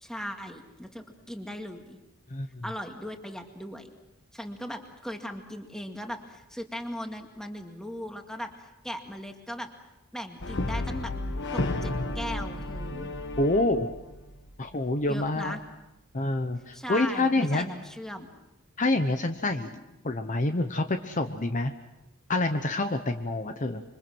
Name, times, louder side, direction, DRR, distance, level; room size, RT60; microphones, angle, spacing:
voice 1, 0.0-2.0 2.6-3.9 4.3-9.7 10.1-11.1 11.5-13.1 15.1-15.6 16.7-18.3, equal, 5° left, 4 dB, 2.1 m, -38 dB
voice 2, 2.3-2.6 11.8-12.0 13.4-13.9 14.6-15.6 16.1-17.7 18.8-19.7 20.0-21.7 22.3-23.8, left 2 dB, 35° left, 7 dB, 0.9 m, -27 dB
Brass instrument, 10.4-14.7, left 2 dB, 55° left, 1.6 m, -33 dB
27.0 x 25.0 x 6.2 m, 0.96 s
head